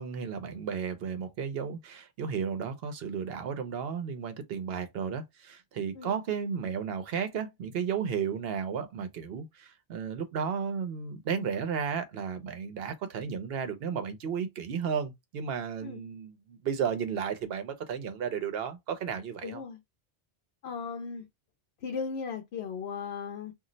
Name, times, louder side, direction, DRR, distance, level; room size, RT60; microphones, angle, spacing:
voice 1, 0.0-19.6, right 7 dB, 70° right, 0.8 m, -33 dB
voice 2, 19.4-19.8 20.6-21.2 21.8-23.5, left 5 dB, 85° left, 0.8 m, -37 dB
2.5 x 2.0 x 3.8 m
omnidirectional pair, 1.0 m